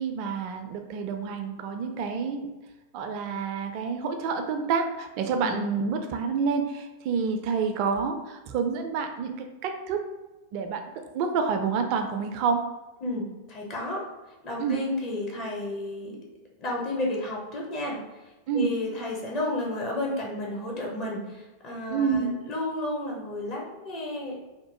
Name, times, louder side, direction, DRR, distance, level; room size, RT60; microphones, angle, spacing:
voice 1, 0.0-2.5 2.9-10.0 10.5-10.8 11.1-12.6 14.6-14.8 18.5-18.7 21.9-22.3, right 5 dB, 45° right, 5 dB, 0.3 m, -28 dB
voice 2, 13.0-14.0 14.4-16.1 16.6-18.0 18.5-24.4, left 1 dB, 40° left, -2 dB, 0.7 m, -32 dB
2.8 x 2.1 x 2.9 m, 1.1 s
figure-of-eight pair, 90°, 0 cm